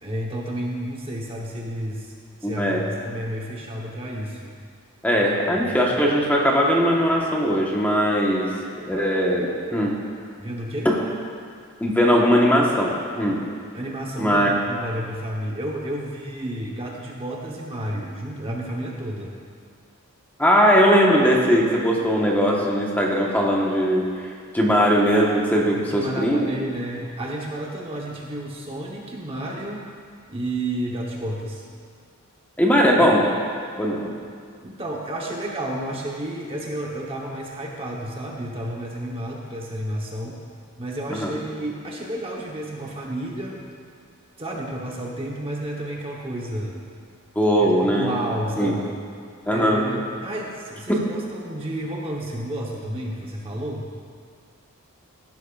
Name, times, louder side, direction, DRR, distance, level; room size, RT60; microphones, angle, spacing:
voice 1, 0.0-2.1 2.4-4.5 5.5-5.9 10.4-10.9 13.7-19.3 25.7-29.8 30.3-31.7 34.6-40.4 40.8-43.7 44.4-46.8 47.6-49.0 49.5-53.9, right 1 dB, 25° right, -2 dB, 0.9 m, -31 dB
voice 2, 2.4-2.8 5.0-8.5 8.8-9.9 10.8-10.9 11.8-13.4 14.2-14.5 20.4-24.0 24.5-26.5 32.6-33.3 33.8-34.1 41.1-41.3 47.3-48.1 48.6-48.7 49.5-49.8, equal, 10° left, -3 dB, 1.1 m, -19 dB
16.0 x 11.0 x 2.4 m, 2.1 s
head